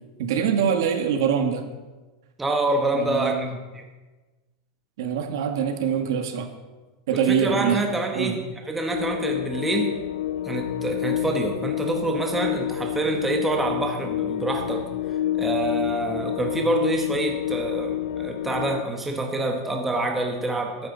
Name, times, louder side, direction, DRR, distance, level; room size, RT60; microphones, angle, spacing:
voice 1, 0.2-1.7 2.9-3.6 5.0-6.5 7.1-7.8 8.1-8.3, right 7 dB, 65° right, 6 dB, 1.5 m, -24 dB
voice 2, 2.4-3.5 3.7-3.8 7.1-9.9 10.4-14.8 15.4-20.9, right 2 dB, 5° right, 2 dB, 1.0 m, -26 dB
sound 1, 8.9-18.8, left 12 dB, 80° left, 0.4 m, -28 dB
14.0 x 12.0 x 4.0 m, 1.2 s
supercardioid pair, 170°, 2 cm